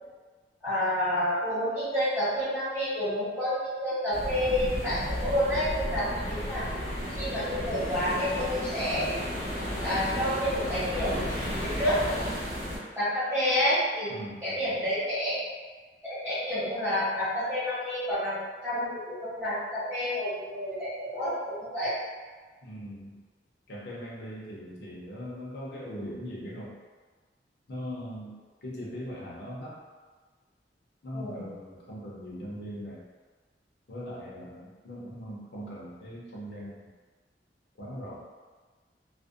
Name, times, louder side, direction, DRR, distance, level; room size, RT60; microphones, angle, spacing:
voice 1, 0.6-6.7 7.2-9.2 9.8-11.4 11.8-12.3 12.9-15.4 16.0-21.9 31.1-31.5, equal, 15° right, -13 dB, 1.0 m, -29 dB
sound 1, 4.1-12.8, equal, 65° right, 1.1 m, -33 dB
voice 2, 14.1-14.8 22.6-23.2 23.7-26.8 27.7-29.8 31.0-33.0 33.9-36.8 37.8-38.2, equal, 65° left, -6 dB, 0.6 m, -40 dB
2.5 x 2.0 x 2.5 m, 1.4 s
head